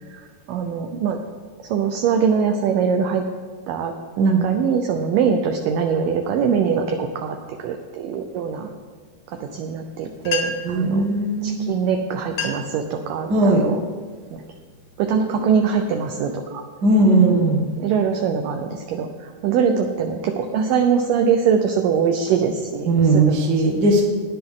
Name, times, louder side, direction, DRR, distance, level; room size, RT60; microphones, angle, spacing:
voice 1, 0.1-1.2 1.6-3.2 3.7-8.7 9.3-11.1 11.4-13.8 14.3-14.4 15.0-16.6 17.8-23.8, right 6 dB, 75° right, 4 dB, 2.1 m, -23 dB
sound 1, 10.0-10.1 10.2-10.8 11.7-11.8 12.2-12.8 13.3-13.6 14.3-14.5 15.1-16.3, left 5 dB, 70° left, 1.2 m, -31 dB
voice 2, 10.6-11.7 13.3-13.7 16.8-17.6 22.9-24.1, right 2 dB, 50° right, 1 dB, 1.2 m, -18 dB
18.5 x 10.0 x 3.7 m, 1.5 s
omnidirectional pair, 4.6 m